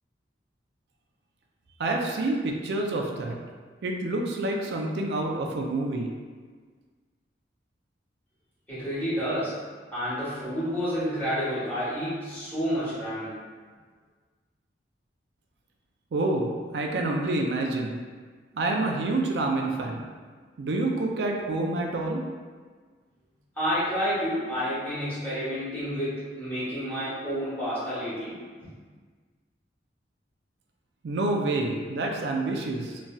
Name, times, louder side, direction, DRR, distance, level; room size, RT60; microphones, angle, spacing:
voice 1, 1.8-3.4 3.8-6.1 16.1-18.0 18.5-20.0 20.6-22.2 31.0-33.0, right 2 dB, 70° right, 1 dB, 0.4 m, -28 dB
voice 2, 8.7-9.6 9.9-13.4 23.5-28.4, equal, 10° left, -13 dB, 1.1 m, -29 dB
3.0 x 2.6 x 2.3 m, 1.5 s
head